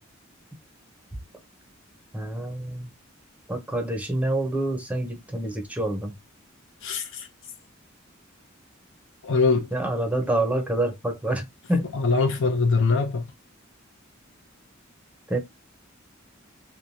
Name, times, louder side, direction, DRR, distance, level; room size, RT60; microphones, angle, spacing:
voice 1, 2.1-2.9 3.5-6.1 9.7-11.9 15.3-15.4, right 1 dB, 5° right, 0.6 m, -27 dB
voice 2, 6.8-7.3 9.2-9.7 11.9-13.2, left 4 dB, 65° left, 0.6 m, -22 dB
3.0 x 2.2 x 2.6 m
head